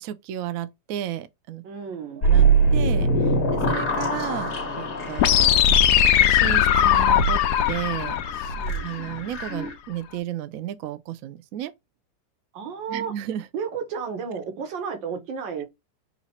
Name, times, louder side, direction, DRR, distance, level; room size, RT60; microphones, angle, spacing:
voice 1, 0.0-1.6 2.1-2.5 2.7-5.6 6.3-7.4 7.7-8.5 8.8-11.7 12.9-13.5, right 11 dB, 70° right, 0.8 m, -33 dB
voice 2, 1.6-2.3 8.5-8.9 12.5-13.1 13.5-15.6, right 6 dB, 85° right, 1.8 m, -32 dB
sound 1, 2.2-9.7, right 3 dB, 45° left, 1.6 m, -24 dB
sound 2, 5.2-9.2, left 10 dB, 75° left, 1.1 m, -20 dB
4.0 x 3.0 x 4.2 m
omnidirectional pair, 2.0 m